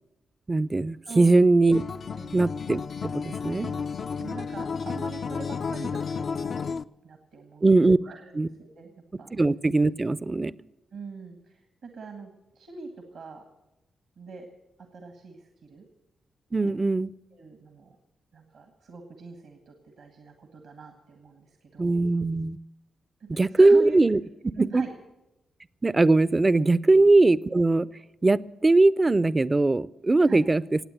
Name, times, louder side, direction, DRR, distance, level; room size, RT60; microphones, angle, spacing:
voice 1, 0.5-1.8 2.3-2.8 3.1-3.7 7.6-8.0 8.3-8.5 9.3-10.5 16.5-17.1 21.8-22.6 23.3-24.2 24.6-24.8 25.8-27.9 28.2-30.8, right 2 dB, 30° right, 19 dB, 0.5 m, -20 dB
voice 2, 1.0-1.4 2.1-2.3 3.5-6.5 7.0-7.7 8.0-9.3 10.9-12.3 12.6-13.4 14.2-14.5 14.9-15.8 16.6-16.8 17.3-18.0 18.3-22.1 23.2-24.0 24.6-24.9 26.8-27.0 30.3-30.4, right 4 dB, 75° right, 6 dB, 1.6 m, -42 dB
Acoustic guitar, 1.7-6.8, left 5 dB, 60° left, 0.4 m, -32 dB
16.0 x 8.9 x 9.0 m, 0.97 s
hypercardioid pair, 40°, 0 cm